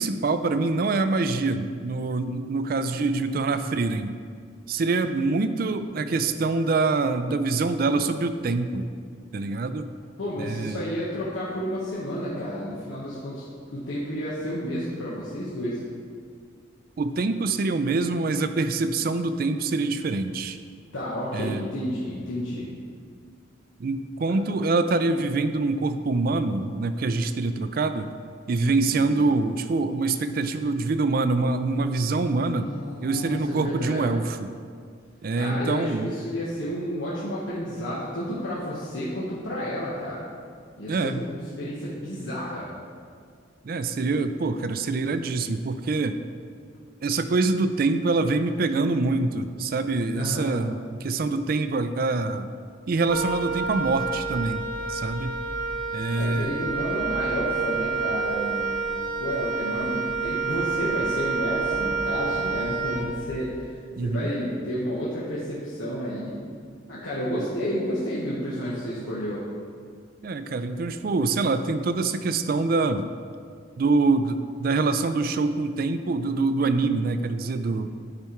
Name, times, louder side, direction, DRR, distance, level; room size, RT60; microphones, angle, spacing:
voice 1, 0.0-4.1 4.7-8.9 9.3-9.9 10.4-10.8 17.0-20.6 21.3-21.7 23.8-28.1 28.5-32.7 33.0-34.5 35.2-36.1 40.9-41.2 43.6-46.2 47.0-52.5 52.9-54.6 54.9-55.4 55.9-56.5 63.9-64.3 67.3-67.4 70.2-73.1 73.8-77.9, right 3 dB, 50° right, 10 dB, 0.4 m, -25 dB
voice 2, 10.2-13.4 13.7-15.8 20.9-22.7 24.3-24.4 28.7-29.1 32.5-34.2 35.3-40.2 40.8-42.7 50.1-50.6 56.2-58.9 59.2-63.7 64.0-66.3 66.9-69.4, equal, 80° left, -8 dB, 1.2 m, -31 dB
Wind instrument woodwind instrument, 53.1-63.5, right 4 dB, 5° left, 1.1 m, -29 dB
10.5 x 4.3 x 4.5 m, 2.2 s
head